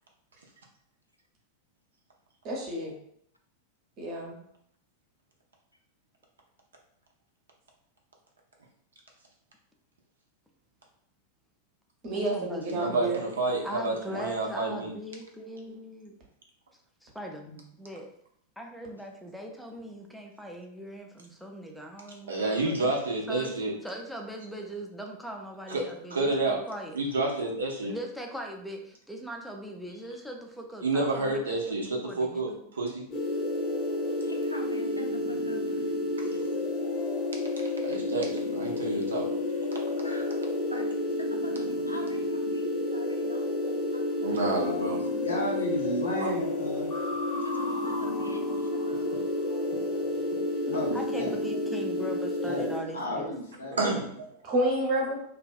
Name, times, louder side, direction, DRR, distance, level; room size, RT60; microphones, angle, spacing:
voice 1, 2.4-2.9 4.0-4.4 12.0-13.2 17.5-17.6 54.4-55.2, right 1 dB, 40° right, -1 dB, 0.8 m, -29 dB
voice 2, 12.1-13.0 13.6-16.1 17.0-17.5 17.8-18.1 18.6-22.9 23.3-27.0 27.8-32.6 50.7-53.3, equal, ahead, 1 dB, 0.4 m, -40 dB
voice 3, 12.6-14.9 22.3-23.7 25.7-25.8 26.1-26.6 26.9-27.9 30.8-33.0 37.8-39.3 44.2-45.0 46.2-46.3 53.7-54.3, right 2 dB, 70° right, 0 dB, 0.5 m, -29 dB
sound 1, 33.1-52.8, left 2 dB, 35° left, 0.7 m, -30 dB
voice 4, 34.2-36.7 40.0-44.5 44.9-45.4 47.3-49.1, left 1 dB, 90° left, 2 dB, 0.3 m, -44 dB
voice 5, 44.5-47.7 48.2-54.0 54.4-54.5, equal, 75° left, -2 dB, 0.8 m, -37 dB
2.5 x 2.2 x 2.4 m, 0.68 s
figure-of-eight pair, 90°, 0 cm